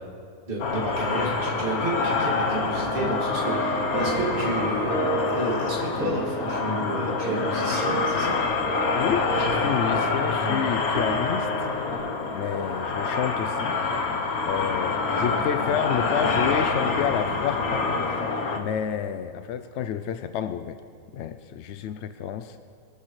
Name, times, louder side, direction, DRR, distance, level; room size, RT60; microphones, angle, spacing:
voice 1, 0.5-8.4, right 1 dB, 35° right, -3 dB, 2.5 m, -31 dB
sound 1, 0.6-18.6, left 4 dB, 80° left, 1.5 m, -26 dB
sound 2, 2.7-12.0, right 1 dB, 85° right, 2.2 m, -32 dB
voice 2, 8.9-11.7 12.3-13.8 14.4-20.8 21.1-22.6, left 9 dB, 65° left, 10 dB, 0.7 m, -30 dB
22.5 x 12.5 x 3.2 m, 2.3 s
omnidirectional pair, 1.5 m